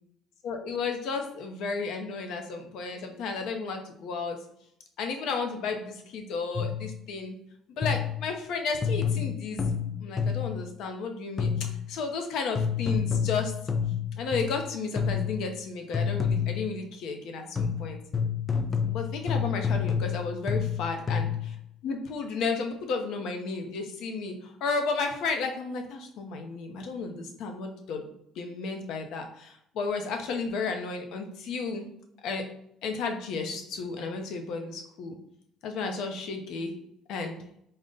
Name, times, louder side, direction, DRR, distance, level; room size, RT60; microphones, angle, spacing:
voice 1, 0.4-4.4 5.0-7.4 7.8-9.6 10.0-13.5 14.2-18.0 18.9-21.6 21.8-24.3 24.6-28.1 28.4-31.9 32.2-32.4 32.8-35.2 35.6-36.7 37.1-37.4, left 4 dB, 70° left, 4 dB, 0.6 m, -33 dB
sound 1, 6.6-6.9 7.8-8.3 8.8-10.6 11.4-11.9 12.6-14.6 15.0-15.5 15.9-16.7 17.6-21.5, left 6 dB, 30° left, 0.4 m, -28 dB
3.8 x 2.1 x 3.8 m, 0.75 s
cardioid pair, 115°, 0 cm